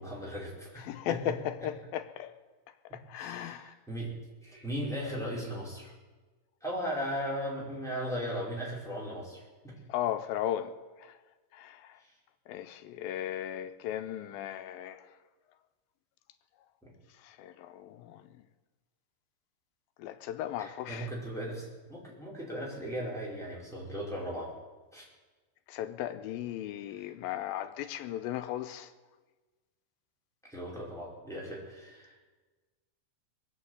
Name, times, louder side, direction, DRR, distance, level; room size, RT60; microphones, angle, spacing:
voice 1, 0.0-1.2 2.9-4.1 4.4-5.9 6.6-9.7 12.0-12.1 16.8-16.9 20.6-24.5 24.9-25.1 30.5-32.2, equal, ahead, 4.6 m, -37 dB
voice 2, 0.8-2.4 2.9-3.7 9.9-11.2 11.5-12.0 12.5-15.2 17.2-18.4 20.0-21.1 25.7-28.9, left 11 dB, 85° left, 2.5 m, -36 dB
21.0 x 8.6 x 8.0 m
omnidirectional pair, 4.2 m